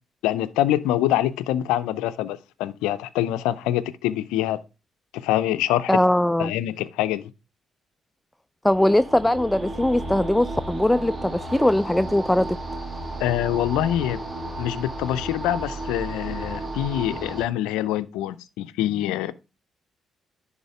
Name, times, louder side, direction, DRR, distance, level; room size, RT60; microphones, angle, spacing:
voice 1, 0.2-4.6 5.1-6.0 6.4-7.2 13.2-14.2 14.5-19.3, left 13 dB, 80° left, 0.5 m, -25 dB
voice 2, 5.9-6.5 8.6-12.6, left 1 dB, 10° left, 0.3 m, -20 dB
sound 1, 8.7-17.5, right 2 dB, 35° right, 1.8 m, -33 dB
10.5 x 3.6 x 4.7 m
hypercardioid pair, 50°, 0 cm